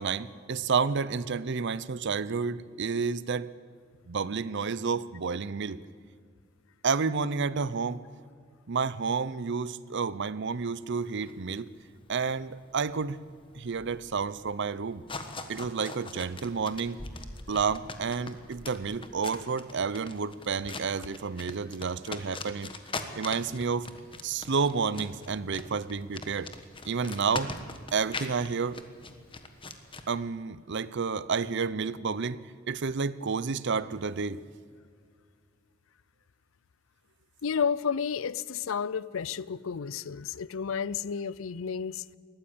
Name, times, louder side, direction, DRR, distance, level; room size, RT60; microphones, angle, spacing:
voice 1, 0.0-3.5 4.1-5.8 6.8-8.0 8.7-11.7 12.1-13.2 13.5-15.0 15.5-17.0 17.5-22.7 23.2-23.9 24.2-26.5 26.8-27.5 27.9-28.8 30.1-32.4 32.7-34.4, right 5 dB, 55° right, 17 dB, 0.6 m, -30 dB
Running man on pavement, 10.9-30.0, left 3 dB, 25° left, 1.3 m, -42 dB
voice 2, 37.4-42.1, left 6 dB, 65° left, 20 dB, 0.5 m, -31 dB
20.0 x 15.0 x 8.6 m, 2.1 s
head